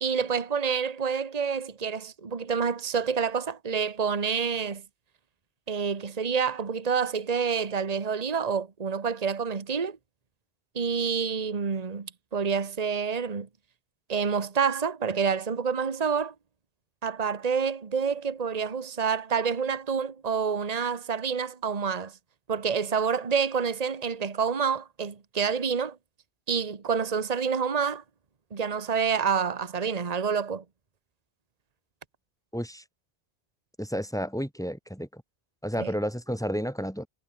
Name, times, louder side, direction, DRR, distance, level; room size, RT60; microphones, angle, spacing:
voice 1, 0.0-4.8 5.7-10.0 10.7-13.5 14.1-16.3 17.0-22.1 22.5-26.0 26.5-28.0 28.5-30.6 35.8-35.9, right 6 dB, 40° right, 1.3 m, -28 dB
voice 2, 32.5-32.8 33.8-35.2 35.6-37.1, equal, 5° left, 3.8 m, -31 dB
omnidirectional pair, 1.1 m